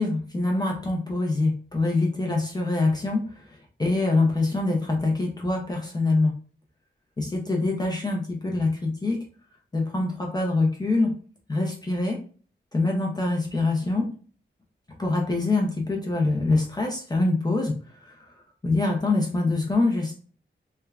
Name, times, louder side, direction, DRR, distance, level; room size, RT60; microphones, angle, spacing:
voice 1, 0.0-6.3 7.2-9.2 9.7-11.1 11.5-12.2 12.7-14.0 15.0-17.8 18.0-18.2 18.6-20.1, left 2 dB, 20° left, 0 dB, 0.4 m, -24 dB
3.2 x 2.1 x 2.3 m, 0.41 s
wide cardioid pair, 150°, 20 cm